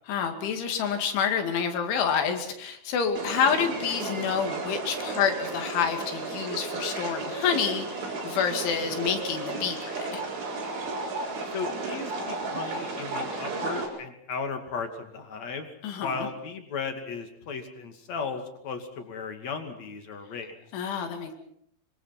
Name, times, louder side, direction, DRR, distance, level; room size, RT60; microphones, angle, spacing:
voice 1, 0.1-10.2 15.8-16.3 20.7-21.3, left 7 dB, 85° left, 5 dB, 5.0 m, -28 dB
sound 1, 3.2-13.9, right 3 dB, 80° right, 6.9 m, -33 dB
voice 2, 11.5-15.7 16.0-20.5, left 5 dB, 45° left, 6 dB, 3.1 m, -36 dB
25.5 x 24.5 x 6.0 m, 0.71 s
omnidirectional pair, 5.3 m